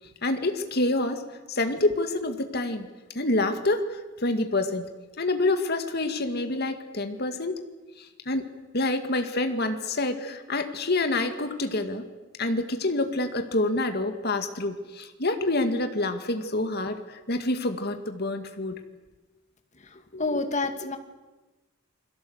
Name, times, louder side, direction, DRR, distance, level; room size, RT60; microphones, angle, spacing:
voice 1, 0.2-1.2 1.5-2.9 3.2-4.9 5.2-7.6 8.0-8.5 8.7-12.0 12.4-18.8 20.1-20.4, left 2 dB, 55° left, 7 dB, 2.0 m, -27 dB
voice 2, 20.2-21.0, left 3 dB, 35° left, 7 dB, 2.2 m, -27 dB
29.0 x 22.0 x 8.0 m, 1.1 s
head